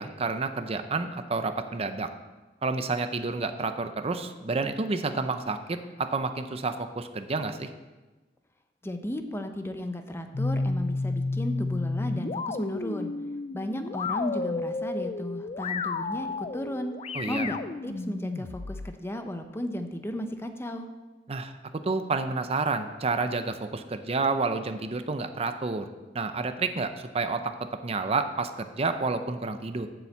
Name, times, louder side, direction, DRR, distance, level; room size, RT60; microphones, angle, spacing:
voice 1, 0.0-2.1 2.6-7.7 17.1-17.5 21.3-21.5 21.8-25.9 26.1-27.4 27.8-29.9, right 3 dB, 35° right, 8 dB, 0.6 m, -29 dB
voice 2, 8.8-13.1 13.5-16.9 17.3-17.6 17.8-20.9, left 1 dB, 15° left, 6 dB, 0.8 m, -34 dB
sound 1, 10.3-18.9, left 3 dB, 35° left, 0.4 m, -32 dB
7.8 x 7.1 x 7.2 m, 1.2 s
head